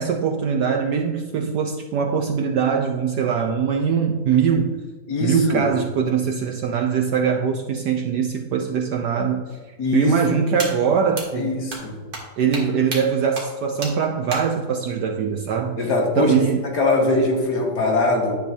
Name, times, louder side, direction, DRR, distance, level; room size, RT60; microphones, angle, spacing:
voice 1, 0.0-4.8 5.2-9.6 9.9-11.5 12.4-15.8 16.2-16.6, right 6 dB, 70° right, 3 dB, 1.0 m, -22 dB
voice 2, 5.1-5.6 9.8-10.3 11.4-12.0 15.8-16.4 16.7-18.4, left 2 dB, 55° left, 0 dB, 2.0 m, -21 dB
sound 1, 10.6-10.7 11.1-11.3 11.7-11.8 12.1-12.2 12.5-12.6 12.9-13.0 13.4-13.5 13.8-13.9 14.3-14.4, right 3 dB, 50° right, 2.2 m, -29 dB
10.5 x 8.3 x 2.7 m, 1.4 s
omnidirectional pair, 2.2 m